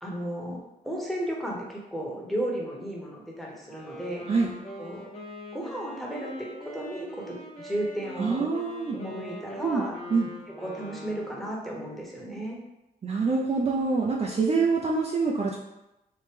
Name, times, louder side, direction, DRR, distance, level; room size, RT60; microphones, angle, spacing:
voice 1, 0.0-0.6 0.8-4.2 4.8-5.0 5.5-8.5 8.9-10.0 10.6-12.6, right 1 dB, ahead, -3 dB, 1.0 m, -34 dB
Wind instrument woodwind instrument, 3.5-11.5, equal, 40° left, 1.1 m, -42 dB
voice 2, 8.2-9.0 9.6-9.8 10.1-10.3 13.0-15.6, right 4 dB, 40° right, -2 dB, 0.4 m, -25 dB
3.2 x 2.1 x 3.3 m, 0.93 s
cardioid pair, 60°, 17 cm